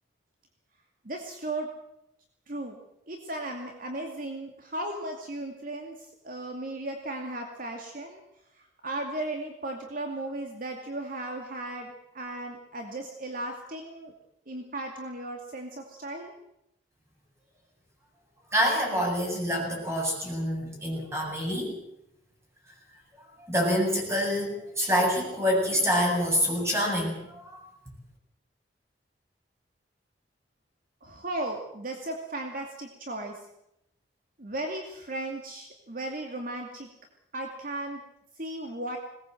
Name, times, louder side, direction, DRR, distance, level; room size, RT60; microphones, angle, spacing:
voice 1, 1.0-1.7 2.5-2.8 3.1-8.2 8.5-14.1 14.5-16.3 31.0-33.4 34.4-36.9 37.3-38.0 38.4-39.0, right 1 dB, 50° right, 3 dB, 2.4 m, -36 dB
voice 2, 18.5-21.7 23.4-27.6, equal, 15° right, -1 dB, 8.0 m, -26 dB
21.0 x 19.0 x 7.8 m, 0.81 s
head